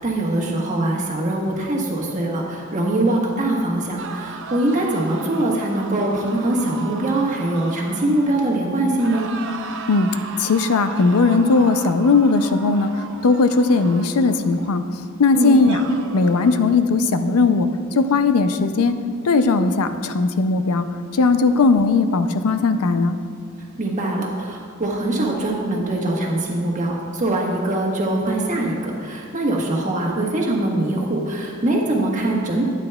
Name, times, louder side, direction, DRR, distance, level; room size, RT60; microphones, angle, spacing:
voice 1, 0.0-9.3 15.3-15.7 21.4-21.6 23.8-32.7, right 1 dB, 35° right, -2 dB, 1.3 m, -22 dB
sound 1, 4.0-8.6 9.0-14.8 15.3-16.8, right 5 dB, 60° right, 0.6 m, -36 dB
voice 2, 10.4-14.8 15.2-15.8 16.1-17.7 18.0-19.0 19.2-20.9 21.1-23.2, left 3 dB, 80° left, 9 dB, 0.5 m, -18 dB
12.0 x 9.1 x 2.3 m, 2.2 s
head